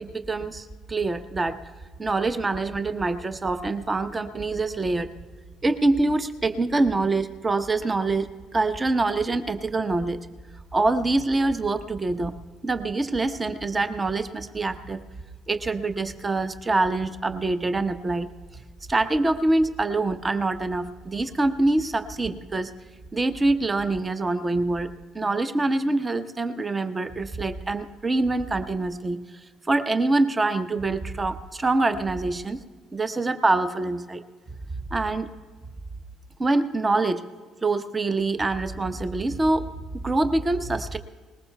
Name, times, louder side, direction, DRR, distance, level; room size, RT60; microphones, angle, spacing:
voice 1, 0.0-1.6 2.0-5.1 5.6-10.2 10.7-12.3 12.6-15.0 15.5-18.3 18.5-18.6 18.9-22.7 23.1-24.9 25.1-29.2 29.7-32.6 32.9-34.2 34.9-35.3 36.4-37.2 37.6-41.0, right 2 dB, 25° right, 10 dB, 0.8 m, -25 dB
20.0 x 19.5 x 2.3 m, 1.5 s
figure-of-eight pair, 50°, 0 cm